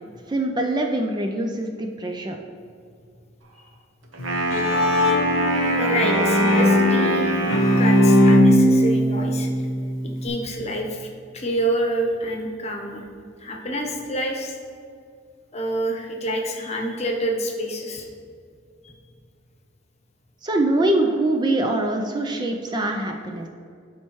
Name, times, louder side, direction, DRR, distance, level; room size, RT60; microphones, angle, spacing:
voice 1, 0.3-2.4 20.4-23.5, right 1 dB, 20° right, 3 dB, 0.4 m, -23 dB
Wind instrument woodwind instrument, 4.1-8.1, right 1 dB, 85° right, 1.1 m, -25 dB
Bowed string instrument, 4.2-10.3, left 1 dB, 75° left, 0.8 m, -19 dB
voice 2, 5.7-7.3 7.8-9.7 10.0-11.1 11.3-13.1 13.4-14.6 15.5-18.1 18.8-18.9, right 1 dB, 35° left, 1 dB, 0.9 m, -27 dB
11.5 x 4.4 x 3.1 m, 2.3 s
head